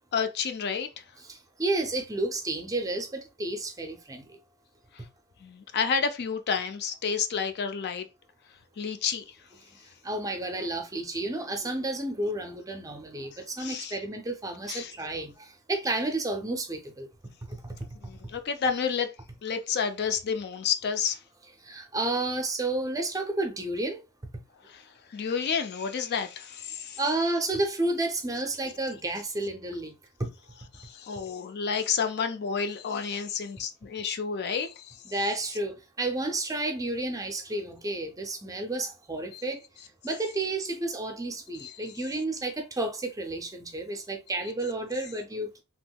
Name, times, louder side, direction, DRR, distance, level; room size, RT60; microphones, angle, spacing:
voice 1, 0.1-1.0 4.9-5.1 5.4-8.1 8.8-9.4 13.6-14.0 14.7-14.9 18.0-19.1 19.4-21.2 24.6-27.0 30.7-35.0 39.3-39.4 41.6-41.9, left 6 dB, 50° left, 0.4 m, -30 dB
voice 2, 1.3-4.4 10.0-17.1 17.5-17.9 21.6-24.0 27.0-29.9 30.2-30.3 35.1-39.6 40.0-45.6, right 2 dB, 15° right, 0.5 m, -31 dB
3.6 x 2.9 x 2.2 m
head